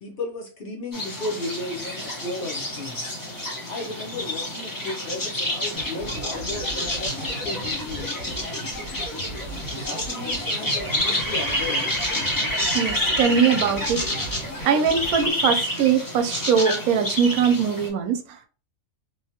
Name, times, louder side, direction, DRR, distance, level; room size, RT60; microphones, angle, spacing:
voice 1, 0.0-3.0 3.7-8.1 9.8-12.0, left 2 dB, 50° left, -1 dB, 0.7 m, -34 dB
sound 1, 0.9-17.9, left 1 dB, 20° left, 0.6 m, -28 dB
sound 2, 5.7-15.3, equal, 80° left, 1.5 m, -36 dB
voice 2, 12.7-14.0 14.6-18.5, right 7 dB, 85° right, 7 dB, 1.1 m, -21 dB
3.1 x 2.3 x 2.7 m, 0.36 s
omnidirectional pair, 1.5 m